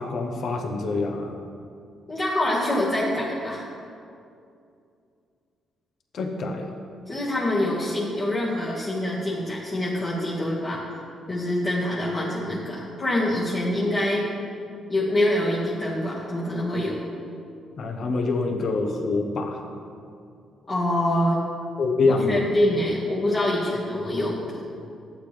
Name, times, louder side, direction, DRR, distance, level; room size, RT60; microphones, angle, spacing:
voice 1, 0.0-1.3 6.1-6.6 17.8-19.6 21.8-22.5, left 3 dB, 60° left, 3 dB, 1.1 m, -25 dB
voice 2, 2.1-3.6 7.0-10.8 11.3-14.3 14.9-17.0 20.7-21.4 22.2-24.6, left 1 dB, 40° left, -8 dB, 1.8 m, -25 dB
12.0 x 8.3 x 3.4 m, 2.5 s
cardioid pair, 90°, 0 cm